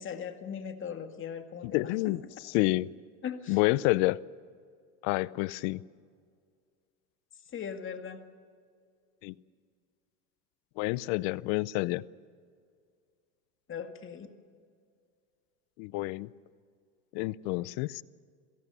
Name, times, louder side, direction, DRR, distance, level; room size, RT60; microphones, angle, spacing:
voice 1, 0.0-1.8 3.2-3.8 7.5-8.2 13.7-14.3, left 7 dB, 30° left, 7 dB, 2.0 m, -39 dB
voice 2, 1.6-2.9 3.5-4.2 5.0-5.8 9.2-9.3 10.8-12.0 15.8-16.3 17.1-18.0, left 20 dB, 60° left, 20 dB, 0.7 m, -29 dB
27.5 x 17.5 x 6.9 m, 2.2 s
supercardioid pair, 115°, 41 cm